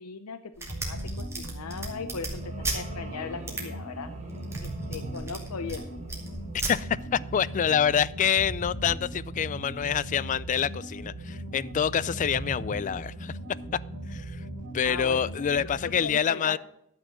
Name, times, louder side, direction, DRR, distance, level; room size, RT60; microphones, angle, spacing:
voice 1, 0.0-4.1 4.6-5.9 14.8-15.3 16.0-16.6, left 5 dB, 85° left, 0.7 m, -38 dB
sound 1, 0.5-2.8 3.5-3.6 4.3-5.8 6.1-6.7, right 2 dB, 10° right, 2.4 m, -35 dB
sound 2, 0.7-16.0, right 1 dB, 50° right, 3.0 m, -38 dB
sound 3, 1.8-8.2, right 3 dB, 30° right, 1.8 m, -50 dB
voice 2, 6.5-13.4 14.1-14.5 14.7-16.6, left 8 dB, 35° left, 0.3 m, -27 dB
11.5 x 6.1 x 7.1 m
head